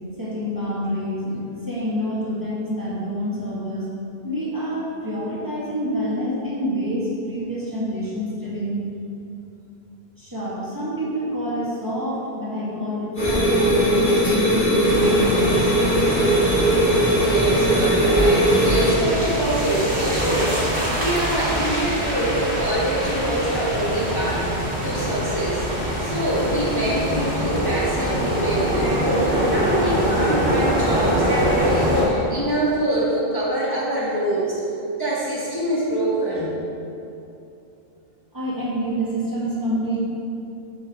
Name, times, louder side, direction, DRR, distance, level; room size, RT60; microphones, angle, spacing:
voice 1, 0.2-3.9 4.2-8.8 10.2-15.7 38.3-40.0, equal, 20° right, -8 dB, 1.9 m, -27 dB
sound 1, 13.2-18.9, right 1 dB, 50° left, 2.3 m, -19 dB
sound 2, 14.8-32.1, equal, 90° right, 2.3 m, -24 dB
voice 2, 17.1-24.5 24.8-25.7 26.0-34.6 35.0-36.6, right 1 dB, 20° left, -8 dB, 1.3 m, -25 dB
7.8 x 6.4 x 5.0 m, 2.7 s
omnidirectional pair, 1.1 m